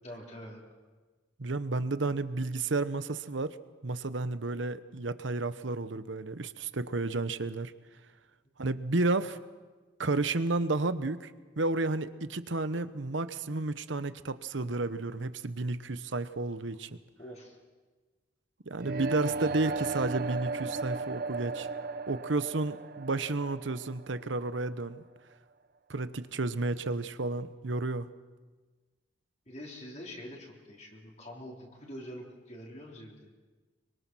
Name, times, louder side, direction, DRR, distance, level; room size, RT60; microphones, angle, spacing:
voice 1, 0.0-0.6 17.2-17.6 29.5-33.3, equal, 35° left, -2 dB, 3.8 m, -45 dB
voice 2, 1.4-3.6 3.8-7.7 8.6-9.4 10.0-11.3 11.6-16.9 18.7-21.7 22.1-25.0 25.9-28.1, right 3 dB, 80° right, 13 dB, 1.0 m, -31 dB
sound 1, 18.8-24.7, right 3 dB, 50° right, 0.7 m, -36 dB
24.5 x 24.0 x 6.2 m, 1.3 s
head